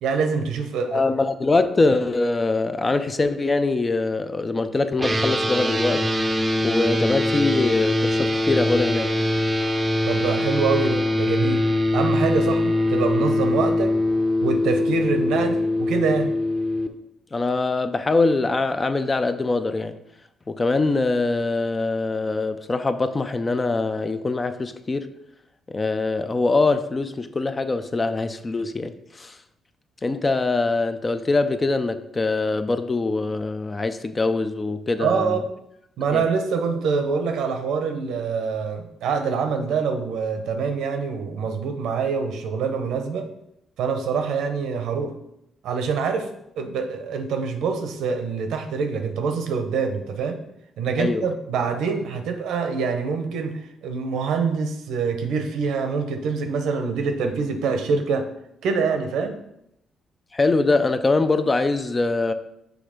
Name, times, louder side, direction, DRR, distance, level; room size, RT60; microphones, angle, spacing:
voice 1, 0.0-1.2 10.1-11.6 11.9-13.9 14.4-16.3 35.0-35.4 36.0-43.3 43.8-45.1 45.6-46.3 46.6-50.4 50.8-58.2 58.6-59.3, right 5 dB, 85° right, 0.8 m, -25 dB
voice 2, 0.9-6.1 6.6-9.2 17.3-20.0 20.5-25.1 25.7-29.4 30.0-35.4 36.1-36.3 51.0-51.3 60.3-62.3, left 3 dB, 25° left, 0.4 m, -23 dB
sound 1, 5.0-16.9, left 1 dB, 15° right, 0.6 m, -22 dB
6.2 x 3.4 x 5.0 m
cardioid pair, 90°, 0 cm